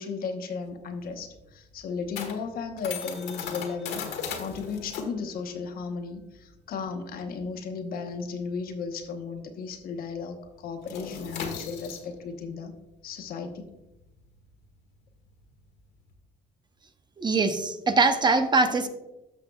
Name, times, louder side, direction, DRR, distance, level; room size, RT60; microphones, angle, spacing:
voice 1, 0.0-4.0 4.3-12.7 13.0-13.7, left 5 dB, 60° left, 5 dB, 1.0 m, -35 dB
sound 1, 0.6-9.6 9.8-10.1 10.4-16.1, left 6 dB, 85° left, 1.4 m, -39 dB
voice 2, 17.2-18.9, right 3 dB, 25° right, 8 dB, 0.7 m, -22 dB
13.5 x 5.6 x 2.3 m, 0.97 s
cardioid pair, 110°, 17 cm